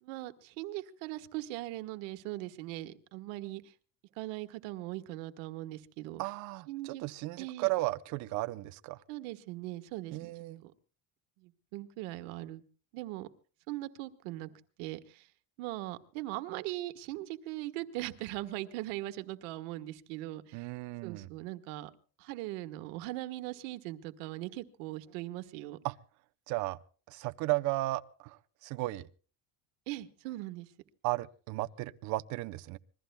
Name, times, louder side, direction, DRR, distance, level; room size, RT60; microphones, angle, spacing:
voice 1, 0.0-3.6 4.2-6.2 6.7-7.0 7.4-7.7 9.1-10.3 10.6-10.7 11.4-12.6 12.9-13.3 13.7-15.3 15.6-20.6 21.0-21.9 22.2-25.8 29.9-30.7, right 17 dB, 85° right, 1.4 m, -40 dB
voice 2, 6.2-9.0 10.1-10.6 20.5-21.3 25.8-25.9 26.5-26.8 27.1-29.1 31.0-32.8, right 19 dB, 50° right, 0.7 m, -35 dB
26.5 x 21.5 x 2.2 m
cardioid pair, 165°, 37 cm